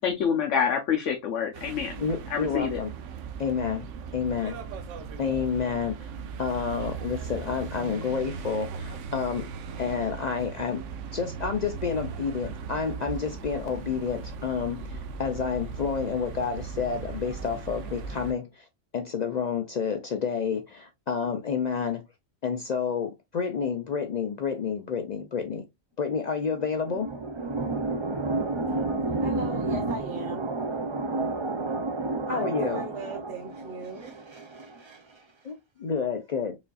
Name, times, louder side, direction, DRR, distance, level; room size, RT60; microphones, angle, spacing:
voice 1, 0.0-2.0 2.3-2.8, left 7 dB, 80° left, 1.0 m, -27 dB
sound 1, 1.5-18.3, right 6 dB, 90° right, 0.9 m, -38 dB
voice 2, 2.0-2.9 3.4-4.6 5.2-6.1 6.4-9.5 9.8-10.9 11.1-18.7 18.9-22.0 22.4-25.7 26.0-27.1 32.3-32.8 35.4-36.6, left 6 dB, 65° left, 0.4 m, -29 dB
sound 2, 26.4-35.0, right 2 dB, 40° right, 0.4 m, -31 dB
voice 3, 29.2-30.5 32.3-34.2, right 3 dB, 70° right, 1.2 m, -39 dB
5.0 x 2.5 x 2.3 m
omnidirectional pair, 1.2 m